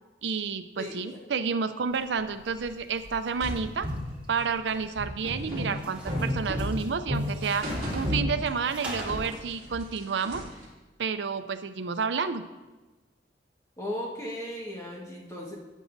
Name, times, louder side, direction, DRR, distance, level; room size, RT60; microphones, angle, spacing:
voice 1, 0.2-3.9 4.3-10.4 11.0-12.4, right 5 dB, 80° right, 11 dB, 0.5 m, -30 dB
voice 2, 0.8-1.4 13.8-15.5, left 1 dB, 15° left, -3 dB, 1.5 m, -37 dB
sound 1, 1.8-9.4, right 1 dB, 5° right, 1.5 m, -45 dB
sound 2, 3.4-8.8 9.1-10.6, equal, 40° right, 2.7 m, -32 dB
11.0 x 9.2 x 2.6 m, 1.2 s
head